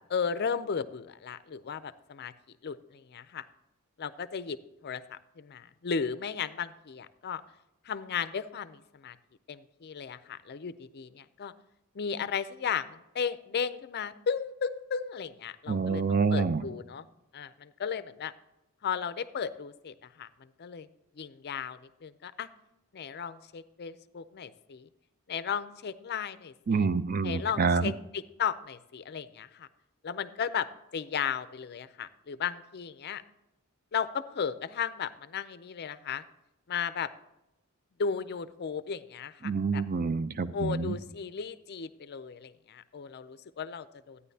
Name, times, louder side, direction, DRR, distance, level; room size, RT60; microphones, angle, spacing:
voice 1, 0.1-2.3 2.6-3.4 4.0-4.6 4.8-7.4 7.8-9.2 9.5-11.5 11.9-17.1 17.3-18.3 18.8-20.9 21.2-22.5 22.9-24.9 25.3-26.9 27.2-29.7 30.0-30.7 30.9-33.2 33.9-36.2 36.7-37.1 38.0-39.8 40.5-44.2, left 6 dB, 45° left, 14 dB, 0.4 m, -35 dB
voice 2, 15.7-16.6 26.7-27.9 39.4-41.0, right 4 dB, 40° right, 12 dB, 0.5 m, -27 dB
12.0 x 9.7 x 2.7 m, 0.94 s
head